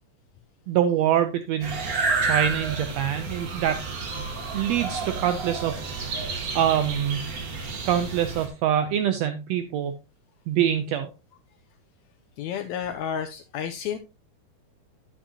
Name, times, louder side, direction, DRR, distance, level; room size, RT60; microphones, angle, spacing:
voice 1, 0.7-1.8 2.2-3.8 4.5-7.2 7.9-9.9 10.5-11.1, right 10 dB, 80° right, 9 dB, 1.5 m, -25 dB
sound 1, 1.6-8.5, right 4 dB, 60° right, 0.9 m, -30 dB
voice 2, 12.4-14.0, left 8 dB, 80° left, 7 dB, 1.7 m, -31 dB
10.0 x 7.2 x 2.8 m, 0.28 s
omnidirectional pair, 3.5 m